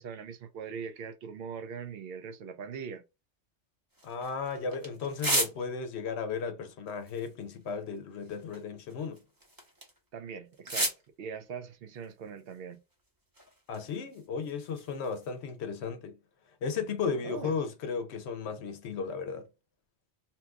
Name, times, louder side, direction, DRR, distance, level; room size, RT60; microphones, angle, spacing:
voice 1, 0.0-3.0 10.1-10.9 11.2-12.8 17.2-17.5, right 6 dB, 65° right, 0.7 m, -41 dB
sound 1, 3.9-6.0 6.9-10.1 10.5-11.1 11.9-13.1 13.3-15.5, right 1 dB, 20° right, 0.7 m, -37 dB
voice 2, 4.0-9.2 13.7-16.2 16.6-19.5, left 5 dB, 70° left, 0.8 m, -35 dB
2.8 x 2.3 x 3.5 m
omnidirectional pair, 1.2 m